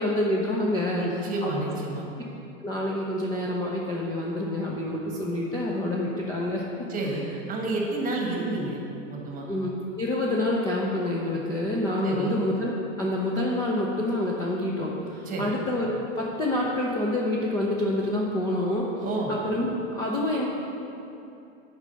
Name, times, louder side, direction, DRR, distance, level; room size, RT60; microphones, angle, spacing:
voice 1, 0.0-1.0 1.4-1.5 2.6-6.6 7.0-7.2 9.5-12.7 13.0-18.9 19.3-20.5, left 1 dB, 10° left, -4 dB, 0.5 m, -27 dB
voice 2, 0.9-2.1 6.9-8.8 9.1-9.5 12.0-12.4 15.2-15.5 19.0-19.4, right 2 dB, 20° right, -1 dB, 1.4 m, -30 dB
7.1 x 5.2 x 6.8 m, 2.7 s
hypercardioid pair, 135°, 40 cm